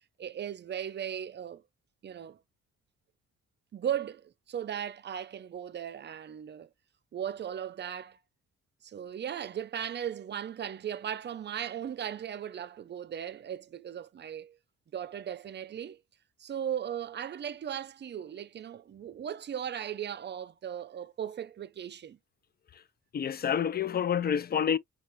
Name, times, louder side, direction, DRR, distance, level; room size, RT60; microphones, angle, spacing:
voice 1, 0.2-1.6 2.0-2.4 3.7-6.7 7.1-8.2 8.8-14.6 14.9-16.0 16.4-22.2, right 9 dB, 35° right, 0.5 m, -37 dB
voice 2, 23.1-24.8, left 8 dB, 35° left, 0.4 m, -28 dB
5.3 x 2.5 x 3.1 m
cardioid pair, 90°, 30 cm